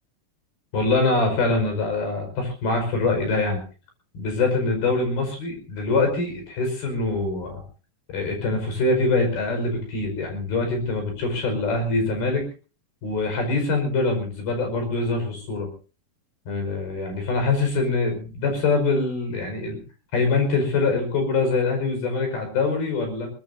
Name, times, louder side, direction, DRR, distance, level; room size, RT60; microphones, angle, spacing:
voice 1, 0.7-3.6 4.1-7.6 8.1-12.5 13.0-15.7 16.5-19.8 20.1-23.3, left 3 dB, 90° left, 5 dB, 7.1 m, -24 dB
22.5 x 20.0 x 2.7 m, 0.36 s
omnidirectional pair, 4.2 m